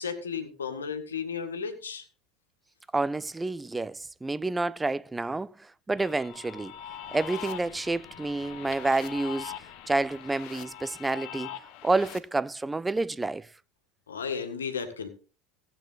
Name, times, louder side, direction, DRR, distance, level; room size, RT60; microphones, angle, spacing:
voice 1, 0.0-2.1 14.1-15.1, left 6 dB, 85° left, 1.7 m, -34 dB
voice 2, 2.9-6.7 7.1-9.5 9.9-11.5 11.8-13.5, right 2 dB, 15° right, 0.5 m, -29 dB
sound 1, 6.0-12.2, left 9 dB, 55° left, 1.4 m, -42 dB
16.0 x 8.5 x 4.0 m
hypercardioid pair, 75°, 0 cm